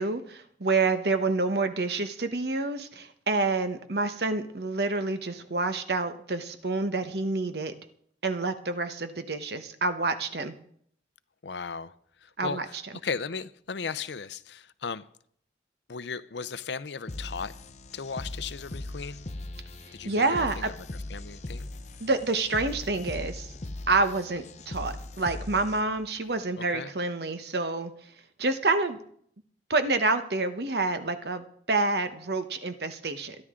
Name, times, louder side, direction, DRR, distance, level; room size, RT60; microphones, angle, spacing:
voice 1, 0.0-7.7 8.2-10.5 12.4-12.6 20.0-20.7 22.0-23.5 23.9-27.9 28.4-29.0 29.7-33.4, right 3 dB, 65° right, 1.1 m, -28 dB
voice 2, 11.4-11.9 12.2-15.1 15.9-17.5 17.9-19.2 19.9-21.7 26.6-26.9, left 5 dB, 75° left, 0.6 m, -36 dB
sound 1, 17.1-26.1, left 1 dB, 40° left, 0.9 m, -40 dB
22.5 x 11.0 x 3.8 m
head